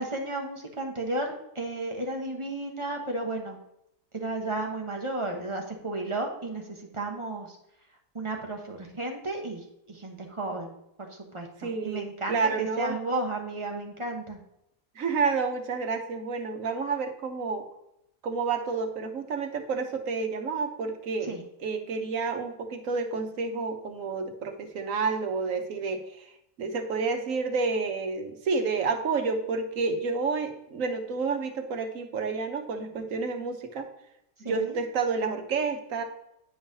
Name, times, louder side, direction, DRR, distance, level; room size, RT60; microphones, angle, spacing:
voice 1, 0.0-3.6 4.1-7.6 8.1-10.8 11.1-14.4 21.3-21.4 34.4-34.8, right 2 dB, 25° right, 2 dB, 1.0 m, -33 dB
voice 2, 11.6-13.0 15.0-17.7 18.2-21.3 21.6-26.3 26.6-33.9 34.4-36.0, right 4 dB, 70° right, 5 dB, 1.3 m, -29 dB
9.6 x 5.5 x 2.7 m, 0.82 s
omnidirectional pair, 1.4 m